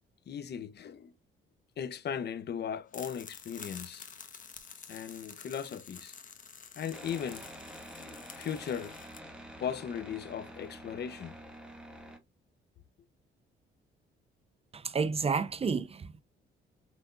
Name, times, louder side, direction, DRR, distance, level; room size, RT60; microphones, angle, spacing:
voice 1, 0.3-1.1 1.8-4.1 4.9-6.1 6.8-7.5 8.0-9.0 9.6-11.4, left 8 dB, 55° left, 0.8 m, -37 dB
sound 1, 2.9-9.2, left 6 dB, 40° left, 1.2 m, -49 dB
sound 2, 6.9-12.2, equal, 5° right, 1.8 m, -48 dB
voice 2, 14.7-16.2, right 5 dB, 30° right, 0.5 m, -31 dB
6.0 x 3.3 x 2.5 m
cardioid pair, 90°, 20 cm